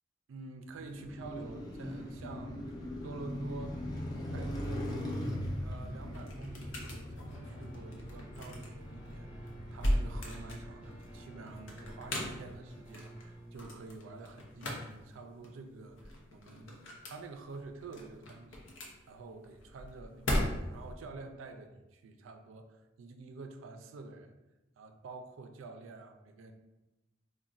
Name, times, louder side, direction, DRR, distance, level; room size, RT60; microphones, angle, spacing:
voice 1, 0.3-3.8 4.2-5.0 5.6-18.7 19.1-20.2 20.6-24.3 24.8-26.5, right 3 dB, 85° right, 6 dB, 0.4 m, -48 dB
Car passing by, 0.7-12.9, left 1 dB, 20° left, 0.3 m, -41 dB
sound 1, 5.6-20.9, equal, 75° left, 0.6 m, -39 dB
sound 2, 7.3-13.5, right 1 dB, 5° right, 1.3 m, -52 dB
3.9 x 2.1 x 2.4 m, 1.0 s
head